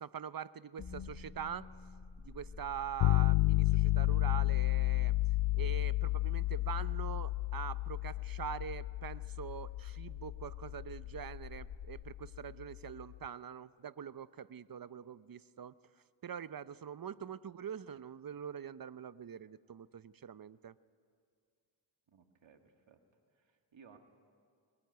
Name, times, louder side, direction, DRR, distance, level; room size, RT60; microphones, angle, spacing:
voice 1, 0.0-1.7 2.2-5.1 5.5-15.7 16.2-20.7, right 8 dB, 45° right, 16 dB, 0.8 m, -44 dB
sound 1, 0.8-12.9, left 5 dB, 50° left, 1.7 m, -51 dB
sound 2, 3.0-12.9, left 18 dB, 75° left, 0.6 m, -32 dB
voice 2, 22.1-23.0 23.4-24.0, right 6 dB, 70° right, 5 dB, 2.1 m, -61 dB
21.5 x 20.0 x 9.4 m, 2.3 s
cardioid pair, 45°, 47 cm